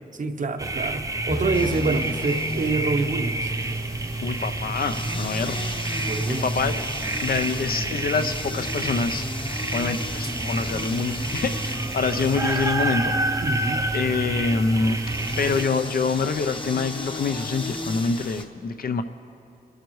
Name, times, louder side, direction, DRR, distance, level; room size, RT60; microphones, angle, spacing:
voice 1, 0.2-3.5 6.0-6.5 13.4-13.9, right 3 dB, 55° right, 6 dB, 0.8 m, -27 dB
sound 1, 0.6-15.6, right 2 dB, 20° right, 0.5 m, -28 dB
sound 2, 1.3-5.0, left 1 dB, 50° left, 1.8 m, -34 dB
sound 3, 1.5-18.4, left 2 dB, 30° left, 0.9 m, -36 dB
voice 2, 4.2-5.7 6.0-6.9 7.2-13.4 13.9-15.0 15.4-19.0, left 4 dB, 70° left, 9 dB, 0.6 m, -26 dB
29.0 x 11.5 x 3.2 m, 2.7 s
wide cardioid pair, 160°, 16 cm